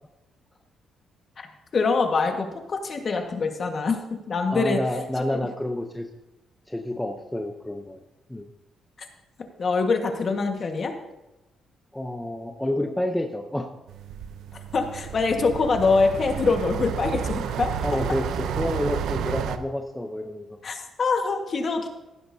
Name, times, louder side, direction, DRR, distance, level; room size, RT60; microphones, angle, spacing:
voice 1, 1.7-4.8 5.3-5.4 9.6-10.9 14.7-17.7 20.6-21.9, left 4 dB, 40° left, 4 dB, 1.5 m, -24 dB
voice 2, 4.5-6.1 6.7-8.0 8.3-8.5 11.9-13.7 17.8-20.6, left 1 dB, 5° left, 4 dB, 0.7 m, -29 dB
sound 1, 13.9-19.6, right 8 dB, 85° right, 0.7 m, -31 dB
16.0 x 11.0 x 2.7 m, 1.0 s
cardioid pair, 130°, 0 cm